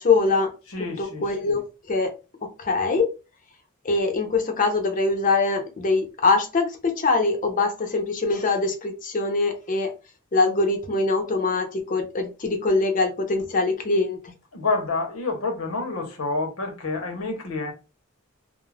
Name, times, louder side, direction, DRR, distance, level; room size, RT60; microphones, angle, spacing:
voice 1, 0.0-0.5 1.0-2.1 2.4-3.1 3.8-9.9 10.3-14.3, left 3 dB, 40° left, 0.6 m, -23 dB
voice 2, 0.7-1.6 14.5-17.7, left 3 dB, 80° left, 0.8 m, -28 dB
2.3 x 2.0 x 3.2 m
head